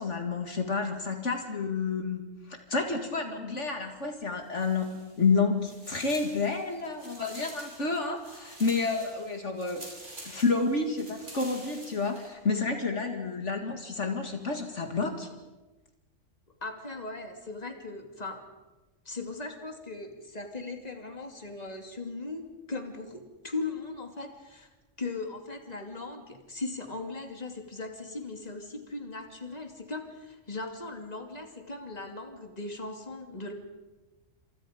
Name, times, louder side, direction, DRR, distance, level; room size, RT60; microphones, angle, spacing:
voice 1, 0.0-2.2 2.5-9.9 10.2-15.3, left 4 dB, 65° left, 4 dB, 2.4 m, -30 dB
sound 1, 4.5-5.3 5.6-12.3, right 1 dB, 65° right, 7.8 m, -48 dB
voice 2, 16.6-18.4 19.0-24.7 25.0-33.5, left 3 dB, 30° left, 4 dB, 2.8 m, -38 dB
29.5 x 27.5 x 5.2 m, 1.1 s
omnidirectional pair, 1.3 m